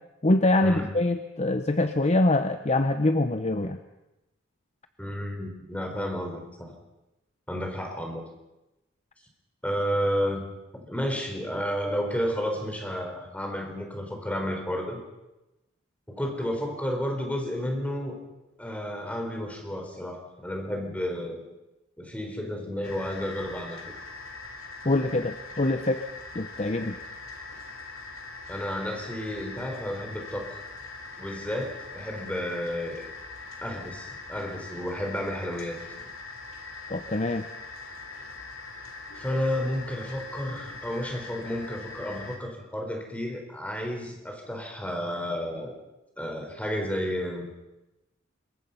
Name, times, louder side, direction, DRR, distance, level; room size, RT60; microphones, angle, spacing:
voice 1, 0.2-3.8 24.8-26.0 26.3-27.0 36.9-37.5, left 2 dB, 30° left, 9 dB, 0.9 m, -24 dB
voice 2, 5.0-6.7 7.5-8.2 9.6-10.4 10.7-15.0 16.1-18.1 18.6-21.4 22.0-23.8 28.5-30.6 31.2-33.1 33.6-35.8 39.2-45.7 46.2-47.5, equal, 5° left, 2 dB, 4.4 m, -31 dB
sound 1, 22.8-42.4, left 3 dB, 75° left, 3.7 m, -42 dB
26.5 x 22.5 x 5.8 m, 0.97 s
head